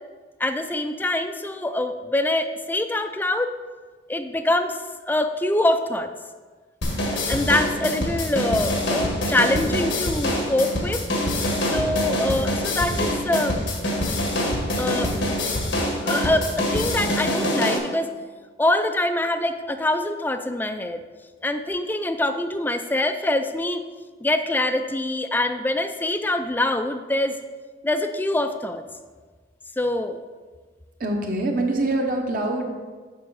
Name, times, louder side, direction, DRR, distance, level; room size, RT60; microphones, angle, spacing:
voice 1, 0.4-3.5 4.1-4.8 5.1-6.1 7.1-11.0 11.7-13.6 14.8-15.1 16.0-18.1 18.6-21.0 21.4-23.8 24.2-27.4 27.8-28.8 29.8-30.2, left 1 dB, 10° left, 8 dB, 0.4 m, -24 dB
sound 1, 6.8-17.8, left 1 dB, 90° left, 1.5 m, -25 dB
voice 2, 31.0-32.8, right 2 dB, 50° right, 2 dB, 1.0 m, -24 dB
7.5 x 5.6 x 4.0 m, 1.4 s
head